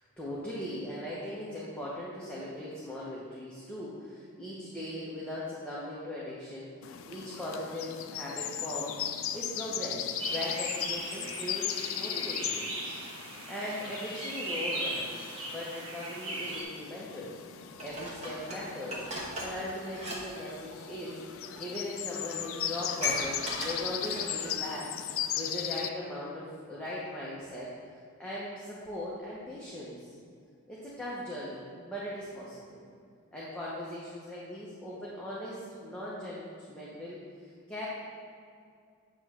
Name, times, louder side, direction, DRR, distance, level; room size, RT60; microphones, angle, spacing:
voice 1, 0.0-12.7 13.5-17.3 17.8-19.0 19.4-21.2 21.6-24.9 25.4-27.7 28.2-30.1 30.7-32.8 33.3-37.9, left 1 dB, 5° left, -8 dB, 0.9 m, -39 dB
sound 1, 6.8-25.9, left 10 dB, 60° left, 0.4 m, -37 dB
sound 2, 10.2-16.6, right 1 dB, 75° right, 1.4 m, -38 dB
Dishes pots and pans, 17.8-20.2 20.5-20.7 21.6-21.7 22.0-22.1 22.3-24.5 25.0-25.1, equal, 30° right, 1.2 m, -38 dB
8.8 x 3.1 x 6.1 m, 2.3 s
head